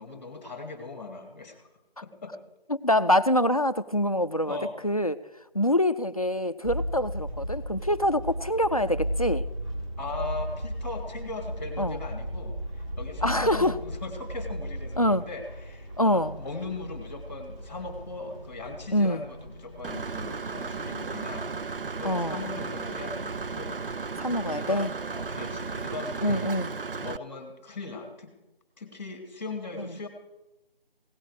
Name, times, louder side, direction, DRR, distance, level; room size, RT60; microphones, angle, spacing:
voice 1, 0.0-1.7 2.0-2.4 4.4-4.7 10.0-21.5 22.0-23.8 24.5-24.9 25.1-26.5 27.0-28.4 28.8-30.1, left 3 dB, 15° left, 5 dB, 1.8 m, -39 dB
voice 2, 2.7-4.6 4.8-5.2 5.5-9.5 11.8-12.0 13.2-13.7 15.0-15.2 16.0-16.4 18.9-19.2 22.0-22.4 24.2-24.9 26.2-26.8 29.8-29.9, left 1 dB, 40° left, 11 dB, 0.5 m, -25 dB
sound 1, 6.6-25.5, equal, 30° right, 3.6 m, -37 dB
Engine / Mechanisms, 19.8-27.2, right 4 dB, 65° right, 0.6 m, -34 dB
17.0 x 11.5 x 5.0 m, 0.99 s
figure-of-eight pair, 165°, 30 cm